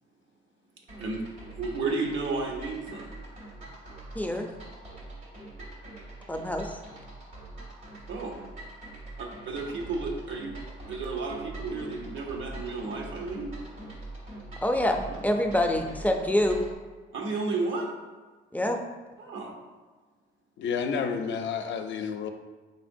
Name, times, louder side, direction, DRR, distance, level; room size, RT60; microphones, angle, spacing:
sound 1, 0.9-16.8, right 2 dB, 90° right, 1.3 m, -43 dB
voice 1, 1.6-3.1 8.1-8.4 9.2-10.5 10.9-13.5 15.1-15.2 17.1-17.9 19.2-19.5, right 3 dB, 75° right, 2 dB, 0.7 m, -32 dB
voice 2, 4.1-4.5 6.3-6.7 14.6-16.7 18.5-18.8, left 1 dB, 10° left, 3 dB, 0.4 m, -26 dB
voice 3, 20.6-22.3, left 6 dB, 70° left, 6 dB, 0.4 m, -30 dB
4.2 x 3.5 x 2.6 m, 1.3 s
cardioid pair, 90°, 20 cm